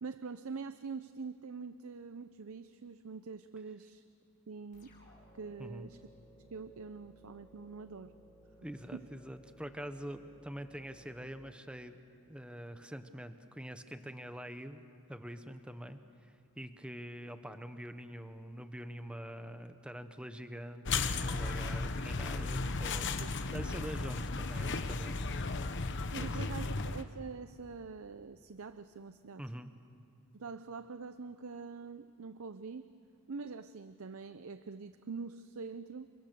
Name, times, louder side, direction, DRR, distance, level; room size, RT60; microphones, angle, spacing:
voice 1, 0.0-4.0 4.5-4.9 5.3-6.0 6.4-8.1 8.9-9.1 23.2-23.3 26.1-29.4 30.3-32.9 33.3-36.1, right 5 dB, 70° right, 12 dB, 0.6 m, -44 dB
sound 1, 4.7-12.2, equal, 40° left, 6.5 m, -60 dB
voice 2, 8.6-12.0 12.3-14.8 15.1-25.2 26.2-26.7 29.4-29.7, equal, 5° right, 9 dB, 1.0 m, -45 dB
sound 2, 20.9-27.0, left 3 dB, 55° left, 1.0 m, -35 dB
29.0 x 24.0 x 6.9 m, 2.4 s
head